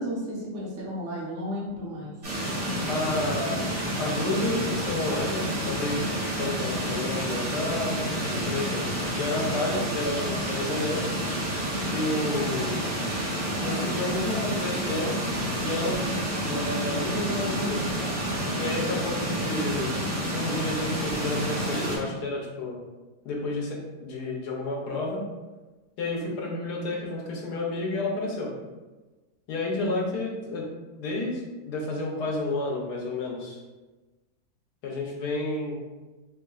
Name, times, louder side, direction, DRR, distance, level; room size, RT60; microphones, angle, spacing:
voice 1, 0.0-2.2 6.4-6.7 29.7-30.1, equal, 70° right, -5 dB, 1.5 m, -34 dB
sound 1, 2.2-22.0, right 1 dB, 55° right, 1.9 m, -29 dB
voice 2, 2.9-3.7 4.0-6.0 6.4-8.0 8.5-8.8 9.1-11.0 11.9-12.9 13.6-15.1 15.6-16.0 16.4-17.8 18.6-19.9 20.3-22.8 23.2-25.2 26.0-28.5 29.5-30.7 31.0-31.4 31.7-33.6 34.8-35.8, left 2 dB, 70° left, -2 dB, 1.3 m, -30 dB
4.6 x 2.6 x 2.3 m, 1.2 s
omnidirectional pair, 1.9 m